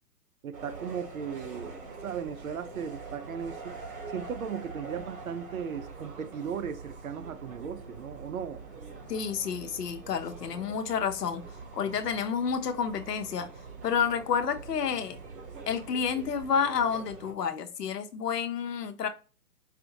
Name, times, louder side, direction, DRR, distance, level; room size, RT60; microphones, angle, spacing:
voice 1, 0.4-1.7 2.0-3.8 4.1-8.6, right 7 dB, 60° right, 0.6 m, -37 dB
sound 1, 0.5-17.3, right 4 dB, 45° right, 2.1 m, -44 dB
voice 2, 9.1-11.4 11.7-13.5 13.8-15.2 15.7-19.1, left 7 dB, 75° left, 0.9 m, -30 dB
5.0 x 2.6 x 2.8 m
hypercardioid pair, 160°, 49 cm